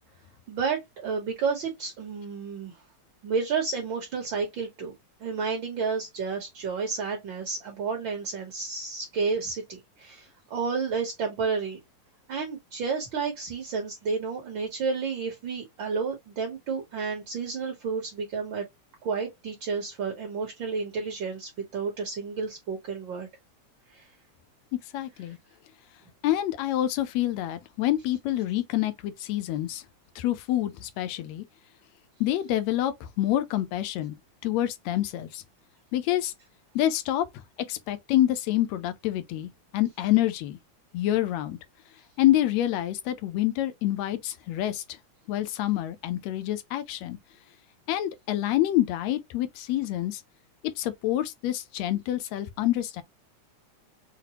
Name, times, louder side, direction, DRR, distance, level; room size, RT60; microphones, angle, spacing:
voice 1, 0.5-2.7 3.2-4.9 5.2-11.8 12.3-18.6 19.0-23.3 23.9-24.1, right 5 dB, 60° right, 1.3 m, -31 dB
voice 2, 24.9-25.4 26.2-29.8 30.1-31.4 32.2-34.2 34.4-35.4 35.9-36.3 36.7-37.2 37.7-40.6 40.9-41.6 42.2-44.8 45.3-47.2 47.9-50.2 50.6-53.0, left 13 dB, 75° left, 1.7 m, -27 dB
5.8 x 2.1 x 2.9 m
omnidirectional pair, 3.5 m